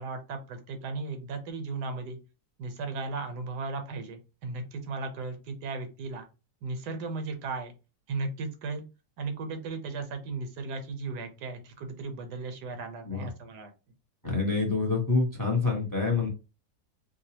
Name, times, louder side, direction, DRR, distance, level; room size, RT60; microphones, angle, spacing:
voice 1, 0.0-2.2 2.6-6.3 6.6-7.7 8.1-8.8 9.2-13.7, right 3 dB, 80° right, 6 dB, 1.4 m, -36 dB
voice 2, 14.2-16.3, left 4 dB, 15° left, 0 dB, 0.7 m, -26 dB
4.9 x 2.2 x 2.8 m, 0.30 s
omnidirectional pair, 1.7 m